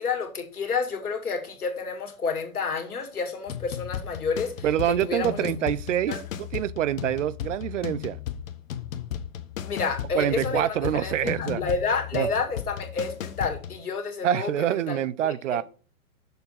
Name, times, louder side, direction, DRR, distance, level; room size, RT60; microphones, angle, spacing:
voice 1, 0.0-5.5 6.1-6.2 9.6-15.6, left 4 dB, 85° left, 2.1 m, -30 dB
sound 1, 3.5-13.8, left 10 dB, 60° left, 0.9 m, -35 dB
voice 2, 4.6-6.1 6.5-8.2 10.1-11.6 12.1-12.3 14.2-15.6, right 11 dB, 55° right, 0.5 m, -26 dB
6.7 x 4.4 x 5.5 m
hypercardioid pair, 130°, 44 cm